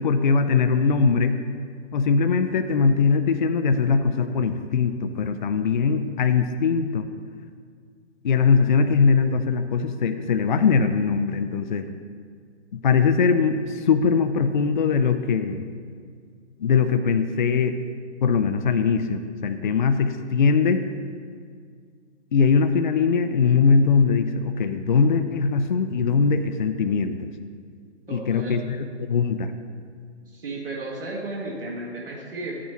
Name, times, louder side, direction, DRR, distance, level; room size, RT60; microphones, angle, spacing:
voice 1, 0.0-1.4 1.9-7.1 8.2-11.9 12.7-15.7 16.6-17.8 18.2-20.8 22.3-27.2 28.1-29.5, left 5 dB, 45° left, 8 dB, 0.5 m, -21 dB
voice 2, 28.1-28.6 30.3-32.6, right 2 dB, 55° right, -3 dB, 1.5 m, -34 dB
10.5 x 8.4 x 3.0 m, 2.1 s
figure-of-eight pair, 140°, 34 cm